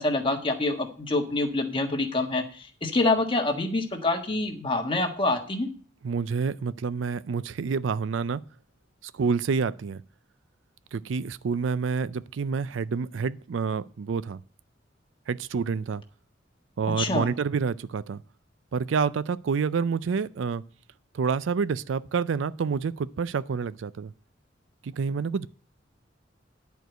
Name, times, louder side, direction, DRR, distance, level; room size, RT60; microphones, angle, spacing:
voice 1, 0.0-5.7 17.0-17.3, left 2 dB, 30° left, 1.4 m, -26 dB
voice 2, 6.0-8.4 9.0-10.0 10.9-14.4 15.3-16.0 16.8-18.2 18.7-20.6 21.1-24.1 24.8-25.5, right 5 dB, 85° right, 0.4 m, -28 dB
10.5 x 4.6 x 7.9 m
head